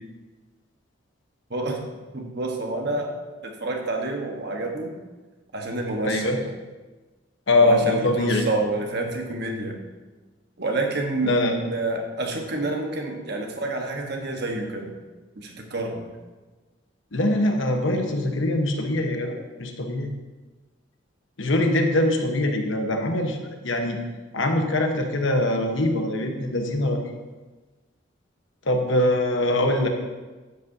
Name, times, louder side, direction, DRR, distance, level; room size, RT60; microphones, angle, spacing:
voice 1, 2.1-3.1 3.4-4.9 5.5-6.4 7.6-9.7 10.6-14.9 15.4-16.1, right 2 dB, 50° right, 2 dB, 1.2 m, -28 dB
voice 2, 6.0-6.4 7.5-8.5 11.2-11.5 17.1-20.1 21.4-24.0 24.3-27.0 28.6-29.9, left 1 dB, 70° left, 3 dB, 1.1 m, -23 dB
12.5 x 8.2 x 2.7 m, 1.2 s
head